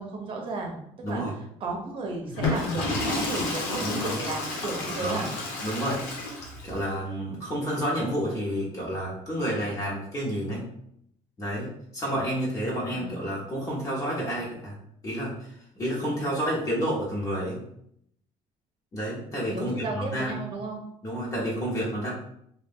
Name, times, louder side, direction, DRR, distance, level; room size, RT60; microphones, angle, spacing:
voice 1, 0.0-1.2 1.6-5.3 12.9-13.2 19.5-20.8, right 3 dB, 45° right, 2 dB, 0.9 m, -34 dB
Water / Toilet flush, 2.3-6.8, left 2 dB, 90° left, 1.1 m, -30 dB
voice 2, 3.8-4.1 5.0-5.3 5.6-6.0 6.6-10.7 11.4-11.7 11.9-14.7 15.0-17.6 18.9-20.5 21.0-22.1, equal, 25° left, -6 dB, 1.2 m, -30 dB
3.5 x 2.4 x 3.6 m, 0.72 s
cardioid pair, 130°, 13 cm